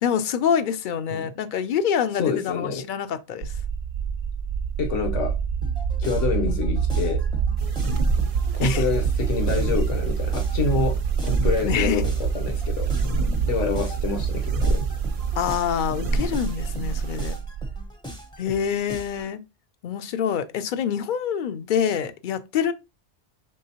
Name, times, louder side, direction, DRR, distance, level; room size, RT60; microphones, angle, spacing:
voice 1, 0.0-3.6 8.6-8.9 11.6-12.1 15.4-17.3 18.4-19.4 19.8-22.7, left 8 dB, 60° left, 0.5 m, -26 dB
voice 2, 2.2-2.8 4.8-5.3 6.0-7.2 8.6-11.0 11.2-12.9 13.5-14.8, left 5 dB, 85° left, 1.2 m, -27 dB
sound 1, 3.4-17.8, right 7 dB, 70° right, 0.8 m, -26 dB
sound 2, 5.6-19.3, equal, 5° left, 0.5 m, -40 dB
sound 3, 7.6-17.4, right 2 dB, 40° right, 0.5 m, -31 dB
5.4 x 3.3 x 2.8 m
omnidirectional pair, 1.2 m